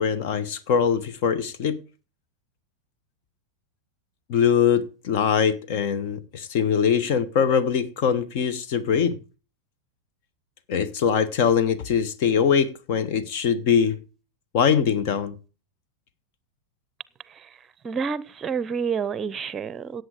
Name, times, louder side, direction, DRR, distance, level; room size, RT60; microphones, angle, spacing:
voice 1, 0.0-1.8 4.3-9.2 10.7-14.0 14.5-15.3, left 7 dB, 45° left, 1.2 m, -22 dB
voice 2, 17.8-20.0, right 6 dB, 20° right, 0.8 m, -28 dB
17.5 x 8.0 x 5.0 m
figure-of-eight pair, 90°, 0 cm